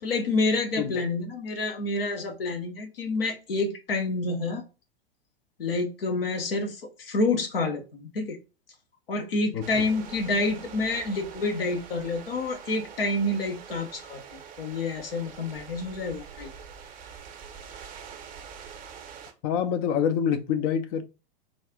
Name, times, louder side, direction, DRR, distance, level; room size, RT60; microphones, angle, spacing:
voice 1, 0.0-4.6 5.6-8.4 9.1-16.5, left 2 dB, 70° left, 0.9 m, -28 dB
voice 2, 9.5-9.8 19.4-21.0, left 8 dB, 40° left, 0.5 m, -26 dB
sound 1, 9.6-19.3, right 7 dB, 25° right, 0.7 m, -45 dB
4.0 x 2.4 x 3.5 m
figure-of-eight pair, 95°, 30 cm